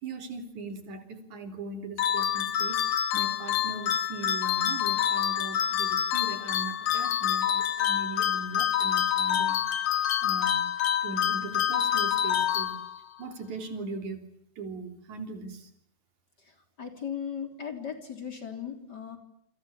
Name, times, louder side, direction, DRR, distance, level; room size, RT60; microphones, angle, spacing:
voice 1, 0.0-10.7 11.0-12.8 13.2-15.7, right 3 dB, 75° right, 6 dB, 4.8 m, -39 dB
sound 1, 2.0-13.2, left 10 dB, 80° left, 3.3 m, -27 dB
voice 2, 16.8-19.2, left 8 dB, 35° left, 5 dB, 3.9 m, -37 dB
30.0 x 25.5 x 7.2 m, 0.70 s
omnidirectional pair, 3.4 m